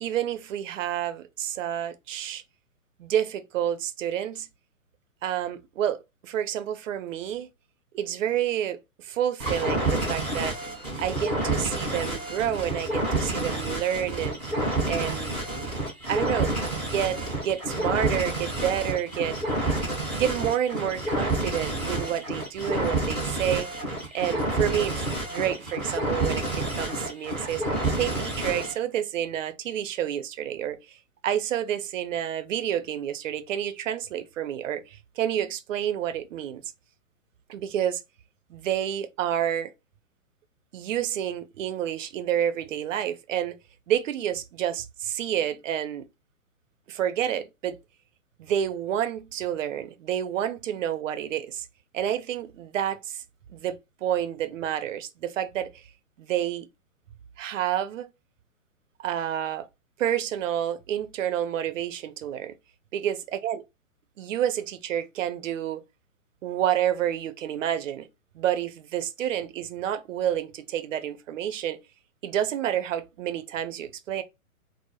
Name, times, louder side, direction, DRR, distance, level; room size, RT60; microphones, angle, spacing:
voice 1, 0.0-2.4 3.0-4.5 5.2-7.5 7.9-10.6 11.0-14.4 14.9-15.4 16.1-17.1 17.5-19.4 20.1-23.7 24.1-25.0 25.3-31.0 31.2-36.6 37.5-38.0 38.5-39.7 40.7-43.6 43.9-46.0 46.9-47.8 48.4-51.7 51.9-53.2 53.5-55.8 56.2-56.7 57.4-58.1 59.0-59.7 60.0-62.5 63.0-63.2 63.4-63.6 64.2-65.8 66.4-68.1 68.3-71.8 72.2-74.2, right 10 dB, 60° right, 0.5 m, -29 dB
sound 1, 9.4-28.8, right 2 dB, ahead, 0.4 m, -29 dB
2.0 x 2.0 x 3.0 m
hypercardioid pair, 135°, 43 cm